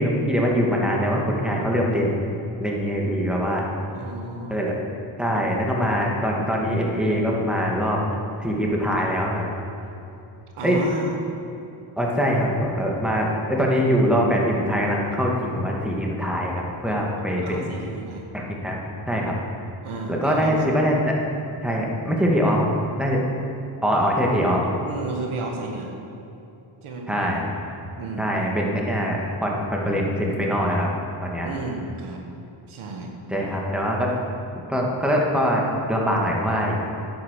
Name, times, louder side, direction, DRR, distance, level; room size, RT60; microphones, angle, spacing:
voice 1, 0.0-3.6 4.5-4.7 5.2-8.0 8.4-9.5 10.6-10.8 12.0-17.7 18.3-18.8 19.1-19.4 20.1-21.2 21.6-22.7 23.0-23.2 23.8-24.6 27.1-27.5 28.2-30.9 31.2-31.5 33.3-34.1 34.7-35.6 35.9-36.8, equal, ahead, -2 dB, 2.4 m, -23 dB
voice 2, 3.9-4.6 10.5-11.2 17.4-18.3 19.8-20.5 24.5-26.0 26.8-27.1 28.0-28.3 31.4-32.2 32.7-33.1, right 3 dB, 90° right, 1 dB, 1.7 m, -33 dB
10.5 x 9.0 x 6.7 m, 2.8 s
cardioid pair, 75°, 48 cm